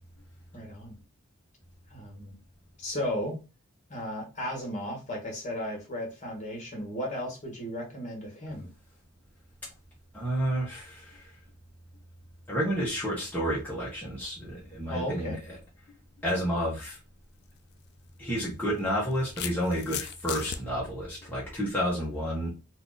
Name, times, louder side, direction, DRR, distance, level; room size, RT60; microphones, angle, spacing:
voice 1, 0.5-1.0 1.9-2.3 2.8-3.4 3.9-8.7 14.9-15.4, equal, 35° left, 0 dB, 1.3 m, -35 dB
voice 2, 10.1-11.4 12.5-15.6 16.2-17.0 18.2-22.5, equal, 10° left, -6 dB, 0.9 m, -30 dB
sound 1, 17.4-17.6 18.7-20.6, left 10 dB, 50° left, 0.3 m, -37 dB
2.8 x 2.5 x 3.8 m, 0.30 s
head